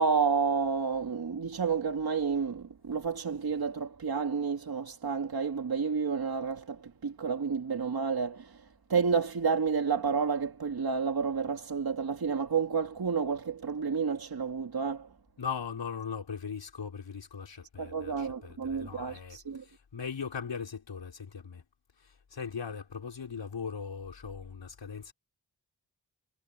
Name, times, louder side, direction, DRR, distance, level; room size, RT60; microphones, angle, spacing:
voice 1, 0.0-15.1 17.8-19.7, right 5 dB, 60° right, 2.1 m, -30 dB
voice 2, 15.4-21.6 22.0-25.1, left 6 dB, 90° left, 5.1 m, -39 dB
wide cardioid pair, 130°, 42 cm